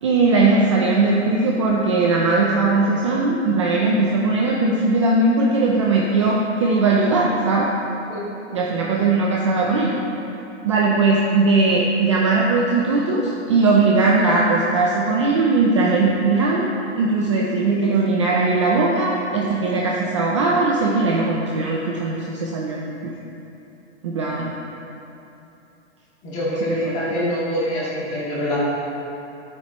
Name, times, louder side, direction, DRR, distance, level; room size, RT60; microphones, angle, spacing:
voice 1, 0.0-7.7 8.5-9.9 10.6-16.7 17.0-23.1 24.0-24.5 26.7-27.0, right 3 dB, 25° right, -3 dB, 0.5 m, -19 dB
voice 2, 26.2-28.6, equal, 20° left, -8 dB, 2.1 m, -25 dB
13.5 x 8.6 x 3.0 m, 2.9 s
supercardioid pair, 175°, 35 cm